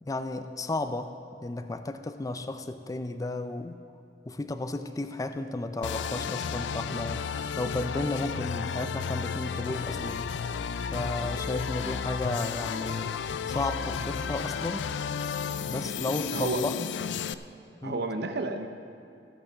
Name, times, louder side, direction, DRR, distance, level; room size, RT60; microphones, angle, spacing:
voice 1, 0.0-1.1 1.4-3.8 4.3-7.2 7.6-10.3 10.9-13.1 13.5-14.9 15.6-16.9 17.8-18.0, left 2 dB, 20° left, 9 dB, 0.4 m, -33 dB
sound 1, 5.8-17.3, left 6 dB, 85° left, 0.4 m, -33 dB
voice 2, 16.3-16.7 17.8-18.7, right 2 dB, 65° right, 7 dB, 0.6 m, -31 dB
15.5 x 5.5 x 7.3 m, 2.7 s
head